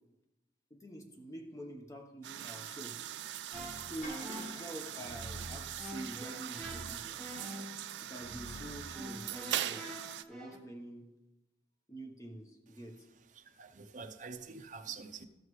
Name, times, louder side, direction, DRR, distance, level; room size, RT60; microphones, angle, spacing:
voice 1, 0.7-3.0 3.9-7.3 8.0-11.1 11.9-13.0, right 1 dB, 20° left, 3 dB, 1.0 m, -47 dB
sound 1, 2.2-10.2, right 11 dB, 80° right, 0.4 m, -41 dB
sound 2, 3.5-10.6, equal, ahead, 1.3 m, -46 dB
sound 3, 4.0-6.4, left 1 dB, 45° left, 1.4 m, -53 dB
voice 2, 13.4-15.3, right 5 dB, 45° right, 6 dB, 0.6 m, -46 dB
14.0 x 6.4 x 3.2 m, 1.0 s
head